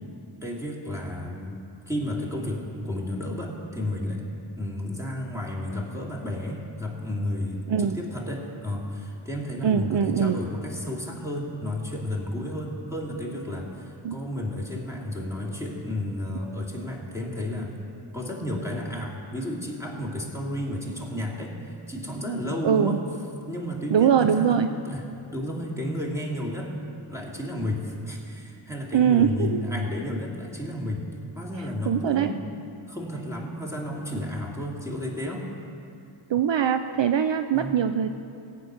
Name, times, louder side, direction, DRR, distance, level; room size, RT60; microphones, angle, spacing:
voice 1, 0.4-1.6 1.9-4.2 4.6-17.8 18.1-23.0 23.5-24.6 24.8-25.1 25.3-26.7 27.1-31.1 31.3-32.4 32.9-35.5 37.5-37.7, left 1 dB, 5° right, -3 dB, 2.5 m, -32 dB
voice 2, 9.6-10.4 14.0-14.2 22.6-23.0 23.9-24.7 28.9-29.6 31.9-32.3 36.3-38.1, right 8 dB, 65° right, 8 dB, 0.5 m, -22 dB
14.5 x 6.0 x 9.5 m, 2.5 s
wide cardioid pair, 45°, 47 cm